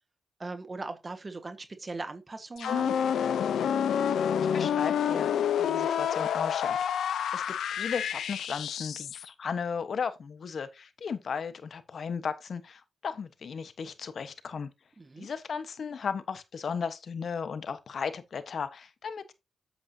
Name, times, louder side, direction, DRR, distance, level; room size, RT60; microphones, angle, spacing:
voice 1, 0.4-3.0 15.0-15.3, right 3 dB, 35° right, 1.5 m, -39 dB
sound 1, 2.6-9.3, left 8 dB, 80° left, 0.7 m, -28 dB
voice 2, 4.4-5.3 5.6-6.8 7.3-7.4 7.7-14.7 15.2-19.3, left 6 dB, 65° left, 1.2 m, -35 dB
8.0 x 7.9 x 2.8 m
supercardioid pair, 50°, 0 cm